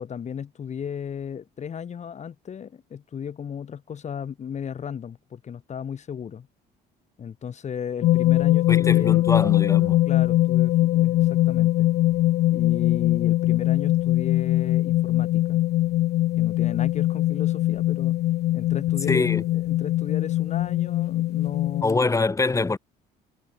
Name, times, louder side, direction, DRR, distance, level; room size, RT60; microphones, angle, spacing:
voice 1, 0.0-6.5 7.2-9.2 10.0-11.9 12.5-15.6 16.4-18.2 18.5-22.1, left 7 dB, 45° left, 6.5 m, -35 dB
sound 1, 8.0-21.8, left 15 dB, 70° left, 1.3 m, -22 dB
voice 2, 8.7-10.0 19.1-19.4 21.8-22.8, left 3 dB, 20° left, 4.1 m, -24 dB
cardioid pair, 110°, 17 cm